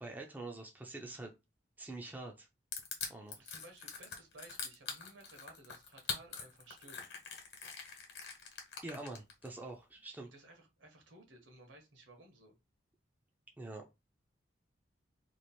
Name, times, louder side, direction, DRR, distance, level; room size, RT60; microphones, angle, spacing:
voice 1, 0.0-1.3 1.8-2.5 3.1-3.4 8.8-10.3 13.6-13.9, right 2 dB, 10° right, 2 dB, 0.5 m, -45 dB
Crushing, 2.7-9.5, left 6 dB, 55° left, 1.1 m, -43 dB
voice 2, 3.4-7.0 10.2-12.6, right 2 dB, 75° right, 4 dB, 1.2 m, -57 dB
3.1 x 2.5 x 4.1 m, 0.24 s
head